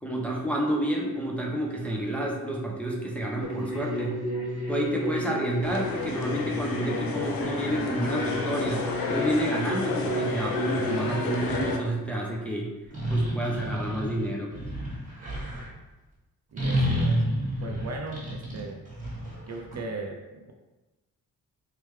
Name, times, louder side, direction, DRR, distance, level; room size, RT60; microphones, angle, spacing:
voice 1, 0.0-4.2 4.7-12.7 13.1-14.5, right 1 dB, 5° left, -3 dB, 0.6 m, -29 dB
sound 1, 3.4-11.3, equal, 45° left, 1.5 m, -32 dB
sound 2, 5.6-11.8, left 4 dB, 75° left, 0.6 m, -32 dB
sound 3, 11.0-11.7 12.9-15.7 16.6-19.8, equal, 20° right, 1.2 m, -29 dB
voice 2, 16.5-17.2 17.6-18.8 19.5-20.5, right 3 dB, 50° right, 2 dB, 0.5 m, -38 dB
3.3 x 3.2 x 3.1 m, 1.1 s
wide cardioid pair, 110°, 36 cm